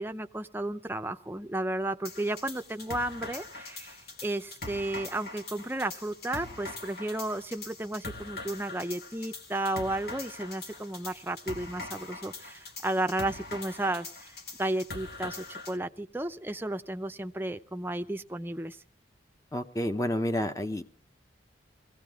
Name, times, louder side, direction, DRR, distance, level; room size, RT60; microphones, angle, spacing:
voice 1, 0.0-4.0 4.2-18.8, right 1 dB, 10° right, 8 dB, 0.6 m, -33 dB
sound 1, 2.0-15.8, left 3 dB, 55° left, 1.7 m, -42 dB
voice 2, 19.5-20.8, left 1 dB, 15° left, 8 dB, 0.8 m, -29 dB
21.5 x 16.5 x 3.6 m, 0.43 s
head